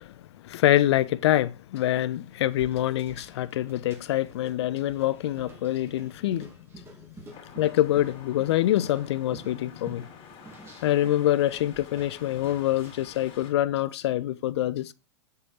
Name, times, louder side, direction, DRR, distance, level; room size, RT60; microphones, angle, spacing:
voice 1, 0.0-6.5 7.5-10.1 10.8-14.9, left 13 dB, 70° left, 0.9 m, -25 dB
sound 1, 2.3-13.2, right 3 dB, 15° right, 3.0 m, -50 dB
sound 2, 7.3-13.5, left 7 dB, 40° left, 4.2 m, -49 dB
8.4 x 5.3 x 6.3 m
hypercardioid pair, 120°, 15 cm